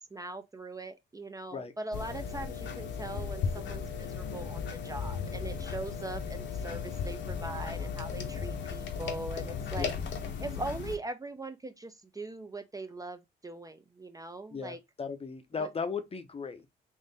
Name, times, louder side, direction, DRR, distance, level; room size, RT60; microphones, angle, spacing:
voice 1, 0.1-9.9 10.4-14.8 15.6-15.7, right 2 dB, 15° right, 0.5 m, -41 dB
sound 1, 1.9-11.0, left 6 dB, 65° left, 0.9 m, -36 dB
voice 2, 14.5-16.7, left 5 dB, 30° left, 0.6 m, -37 dB
3.7 x 2.5 x 4.0 m
cardioid pair, 90°, 20 cm